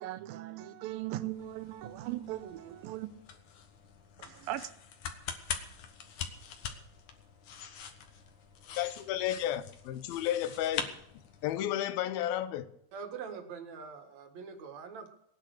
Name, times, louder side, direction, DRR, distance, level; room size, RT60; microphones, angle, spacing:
voice 1, 0.0-3.1 4.2-4.7, right 14 dB, 80° right, 2.5 m, -39 dB
sound 1, 0.9-11.7, left 7 dB, 60° left, 2.5 m, -44 dB
voice 2, 8.8-10.9 11.4-12.7, left 12 dB, 80° left, 2.7 m, -32 dB
voice 3, 12.9-15.1, right 6 dB, 55° right, 2.8 m, -43 dB
20.0 x 10.0 x 6.5 m
omnidirectional pair, 4.2 m